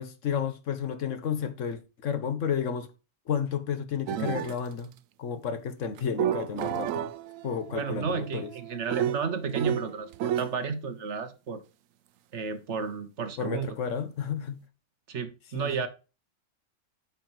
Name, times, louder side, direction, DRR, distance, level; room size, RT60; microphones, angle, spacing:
voice 1, 0.0-2.9 3.3-4.9 5.2-7.1 7.4-8.5 13.4-14.6 15.5-15.9, left 7 dB, 70° left, 1.2 m, -32 dB
sound 1, 4.1-4.6 6.0-10.6, right 11 dB, 80° right, 0.9 m, -32 dB
voice 2, 7.7-11.6 12.3-13.7 15.1-15.9, right 5 dB, 60° right, 1.3 m, -32 dB
8.7 x 5.8 x 3.0 m
omnidirectional pair, 1.4 m